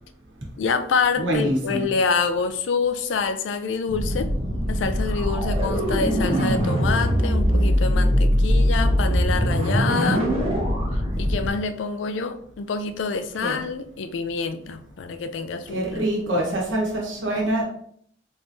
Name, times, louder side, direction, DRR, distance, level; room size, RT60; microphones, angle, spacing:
voice 1, 0.6-4.3 4.7-10.3 11.2-16.1 16.4-16.5, left 5 dB, 70° left, 10 dB, 0.4 m, -26 dB
voice 2, 1.2-1.8 13.4-13.6 15.7-17.6, right 1 dB, 80° right, -2 dB, 1.2 m, -25 dB
sound 1, 3.9-11.5, equal, 30° right, 1.0 m, -21 dB
3.7 x 3.0 x 2.6 m, 0.64 s
head